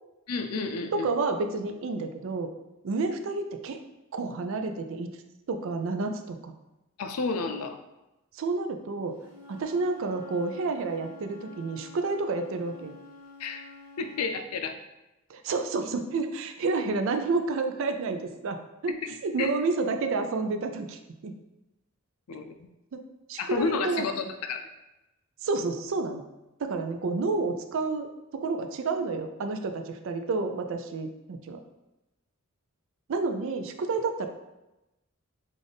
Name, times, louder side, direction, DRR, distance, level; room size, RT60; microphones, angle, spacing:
voice 1, 0.3-1.1 7.0-7.8 13.4-13.6 14.0-14.8 18.9-19.0 19.4-19.5 22.3-22.7 23.4-24.6, left 4 dB, 85° left, 7 dB, 0.4 m, -31 dB
voice 2, 0.9-2.5 2.8-3.8 4.1-5.1 5.5-6.6 8.3-9.2 9.5-13.0 15.3-18.6 18.8-19.0 19.2-21.3 22.9-23.0 23.3-24.1 25.4-26.2 26.6-31.6 33.1-34.3, right 3 dB, 60° right, 6 dB, 0.4 m, -30 dB
Wind instrument woodwind instrument, 9.2-14.3, left 3 dB, 70° left, 0.8 m, -49 dB
3.4 x 2.5 x 3.9 m, 0.97 s
head